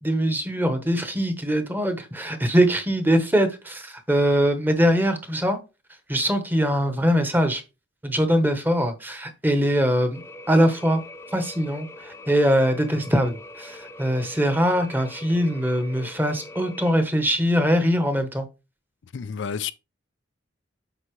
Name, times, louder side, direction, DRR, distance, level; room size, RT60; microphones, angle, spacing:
voice 1, 0.0-5.6 6.1-7.6 8.0-10.2 10.5-11.0 11.3-18.5, equal, 10° right, 0.9 m, -22 dB
sound 1, 10.1-17.0, left 2 dB, 15° left, 0.6 m, -43 dB
voice 2, 19.1-19.7, left 7 dB, 65° left, 0.4 m, -30 dB
8.0 x 5.4 x 3.1 m
head